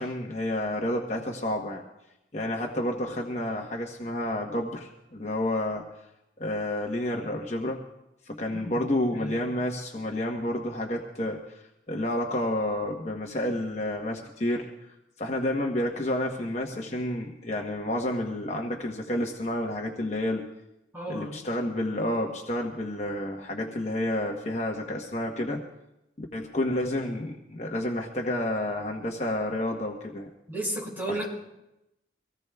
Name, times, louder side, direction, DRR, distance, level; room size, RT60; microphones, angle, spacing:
voice 1, 0.0-1.8 2.3-5.8 6.4-7.8 8.2-20.4 21.1-25.6 26.2-30.3 31.1-31.3, left 1 dB, 40° left, 1 dB, 1.0 m, -30 dB
voice 2, 20.9-21.4 30.5-31.3, right 1 dB, 10° right, -5 dB, 5.8 m, -33 dB
24.5 x 17.5 x 2.3 m, 0.90 s
head